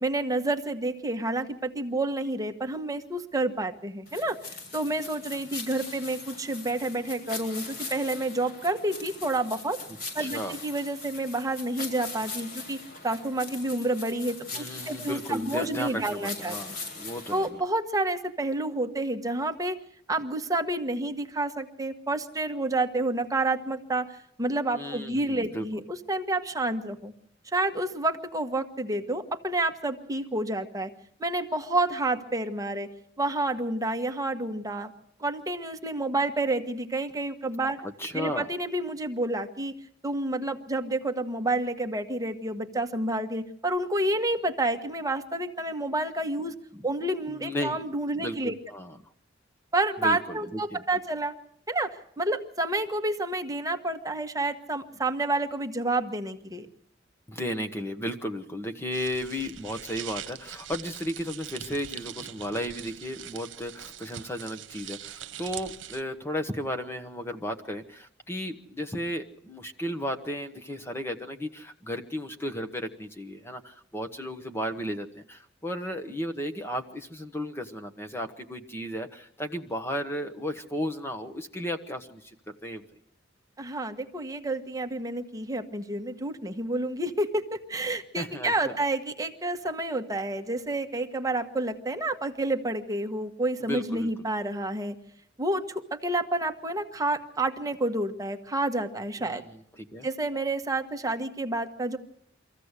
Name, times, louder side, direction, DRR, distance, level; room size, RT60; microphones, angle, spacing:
voice 1, 0.0-9.8 10.1-12.8 13.0-16.6 17.3-19.8 20.1-27.1 27.5-30.9 31.2-32.9 33.2-34.9 35.2-37.8 38.1-39.7 40.0-46.5 46.8-48.5 49.7-51.3 51.7-56.7 83.6-94.9 95.4-99.4 100.0-102.0, right 2 dB, 20° right, 6 dB, 1.4 m, -29 dB
sound 1, 4.1-17.5, left 3 dB, 50° left, 7.5 m, -40 dB
voice 2, 10.2-10.6 14.5-17.6 24.7-25.6 37.8-38.5 46.7-46.8 47.3-47.8 48.1-49.0 50.0-50.8 57.3-82.8 88.2-88.8 93.6-94.1 99.2-99.4 99.8-100.1, equal, 15° left, 7 dB, 1.1 m, -34 dB
sound 2, 58.9-66.0, right 10 dB, 70° right, 1.2 m, -42 dB
24.5 x 15.5 x 8.2 m, 0.69 s
head